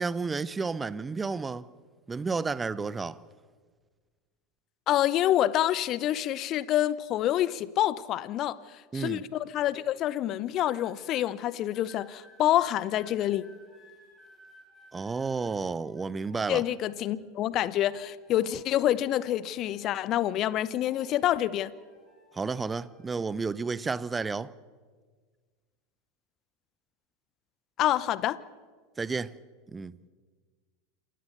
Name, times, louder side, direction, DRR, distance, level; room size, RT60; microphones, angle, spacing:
voice 1, 0.0-1.7 2.1-3.2 8.9-9.2 14.9-16.6 22.3-24.5 29.0-29.3 29.7-30.0, right 4 dB, 15° right, 0.7 m, -31 dB
voice 2, 4.9-8.6 8.9-13.4 16.5-21.7 27.8-28.4, left 12 dB, 45° left, 0.8 m, -27 dB
sound 1, 10.5-11.2 11.7-17.3 17.6-20.3 20.6-23.1 23.9-24.2, left 1 dB, 10° left, 7.4 m, -59 dB
27.5 x 15.5 x 6.8 m
figure-of-eight pair, 80°, 0 cm